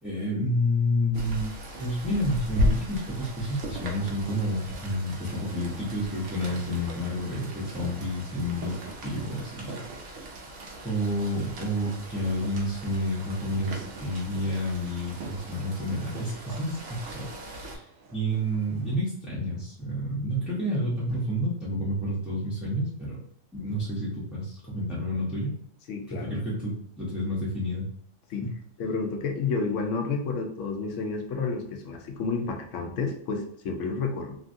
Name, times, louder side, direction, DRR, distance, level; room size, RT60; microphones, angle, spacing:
voice 1, 0.0-10.2 10.8-23.2 23.5-25.5 26.1-27.9, equal, ahead, -9 dB, 0.5 m, -30 dB
Rain, 1.1-17.8, left 1 dB, 90° right, 1.1 m, -37 dB
sound 1, 2.4-19.0, right 4 dB, 60° right, 0.6 m, -48 dB
voice 2, 25.9-26.4 28.3-28.5 28.8-34.4, left 4 dB, 75° left, 3 dB, 0.9 m, -30 dB
3.1 x 2.4 x 2.5 m, 0.67 s
omnidirectional pair, 1.3 m